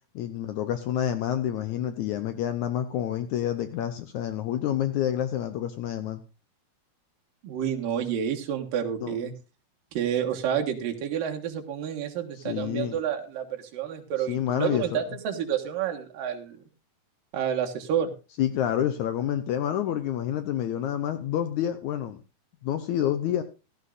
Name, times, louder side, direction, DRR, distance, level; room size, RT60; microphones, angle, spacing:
voice 1, 0.2-6.2 9.0-9.2 12.4-13.0 14.3-15.0 18.4-22.2 22.6-23.4, left 11 dB, 75° left, 10 dB, 1.8 m, -28 dB
voice 2, 7.4-9.3 9.9-16.6 17.3-18.1, right 9 dB, 70° right, 3 dB, 3.1 m, -29 dB
16.5 x 12.5 x 2.6 m, 0.31 s
omnidirectional pair, 4.2 m